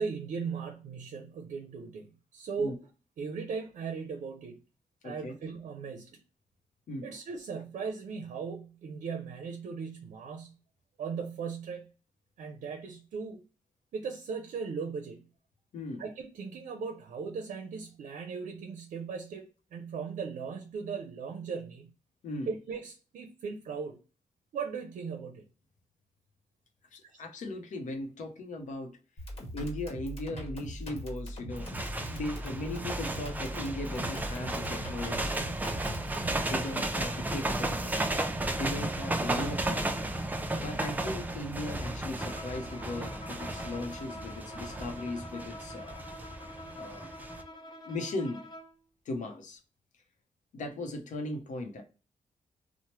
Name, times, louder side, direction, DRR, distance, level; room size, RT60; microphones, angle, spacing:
voice 1, 0.0-2.7 3.2-4.6 5.0-6.1 7.0-10.5 11.0-11.9 12.4-13.4 13.9-15.2 16.0-21.9 22.5-24.0 24.5-25.4 27.1-27.2, right 5 dB, 80° right, 0.5 m, -38 dB
voice 2, 5.0-5.3 6.9-7.1 15.7-16.0 22.2-22.5 26.9-29.0 29.5-31.8 32.1-35.4 36.5-39.8 40.5-46.0 46.7-47.1 47.9-48.4 49.1-49.6 50.5-51.8, left 2 dB, 80° left, 0.6 m, -38 dB
sound 1, 29.2-36.4, equal, 50° left, 1.0 m, -41 dB
sound 2, 31.5-47.4, right 2 dB, 15° right, 0.3 m, -34 dB
Bowed string instrument, 42.2-48.8, equal, 35° left, 0.7 m, -46 dB
2.9 x 2.0 x 3.0 m
wide cardioid pair, 130°, 13 cm